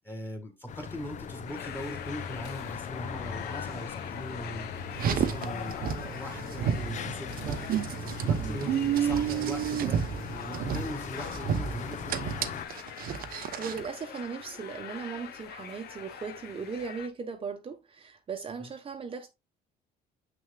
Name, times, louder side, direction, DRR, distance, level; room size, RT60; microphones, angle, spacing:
voice 1, 0.0-7.6 8.0-12.2 18.6-18.7, equal, 15° left, 2.0 m, -41 dB
sound 1, 0.7-12.7, left 8 dB, 45° left, 0.6 m, -40 dB
sound 2, 1.5-17.1, left 9 dB, 70° left, 1.0 m, -44 dB
Car, 4.9-13.9, right 8 dB, 60° right, 0.9 m, -31 dB
voice 2, 8.4-8.7 13.3-19.3, right 5 dB, 35° right, 0.9 m, -38 dB
7.1 x 6.3 x 2.2 m
cardioid pair, 110°, 17 cm